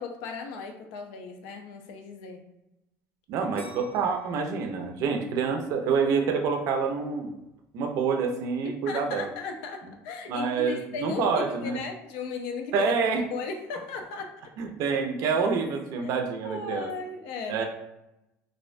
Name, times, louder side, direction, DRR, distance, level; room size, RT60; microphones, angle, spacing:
voice 1, 0.0-2.4 8.6-12.9 13.3-14.5 16.0-16.1 16.4-17.7, left 4 dB, 85° left, 4 dB, 0.4 m, -36 dB
voice 2, 3.3-7.3 7.7-9.3 10.3-11.8 12.7-13.2 14.6-16.9 17.5-17.7, right 5 dB, 60° right, 3 dB, 0.4 m, -27 dB
sound 1, 3.5-6.5 7.0-7.5, right 1 dB, 20° left, 0.7 m, -49 dB
2.3 x 2.1 x 2.5 m, 0.91 s
cardioid pair, 145°, 6 cm